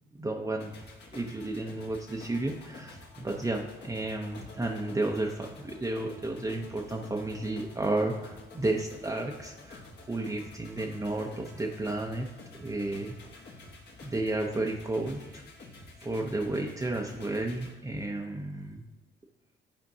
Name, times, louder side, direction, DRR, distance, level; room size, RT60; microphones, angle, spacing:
voice 1, 0.2-0.7 1.1-12.3 12.6-13.1 14.0-15.4 16.0-18.8, right 2 dB, 15° right, 0 dB, 0.6 m, -32 dB
sound 1, 0.6-17.7, left 2 dB, 55° left, 1.4 m, -49 dB
10.5 x 4.3 x 2.7 m, 1.0 s
cardioid pair, 90°, 20 cm